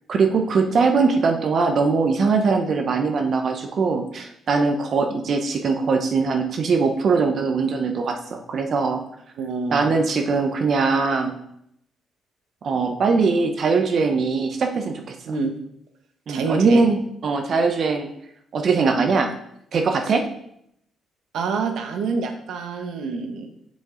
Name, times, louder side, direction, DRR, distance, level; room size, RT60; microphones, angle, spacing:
voice 1, 0.1-9.0 9.7-11.4 12.6-15.1 16.3-18.1 18.5-19.3 19.7-20.2, right 4 dB, 55° right, 4 dB, 0.7 m, -21 dB
voice 2, 9.4-9.9 15.3-15.5 16.3-16.8 21.3-23.5, right 4 dB, 75° right, 6 dB, 1.0 m, -27 dB
6.4 x 5.2 x 3.8 m, 0.73 s
cardioid pair, 90°, 0 cm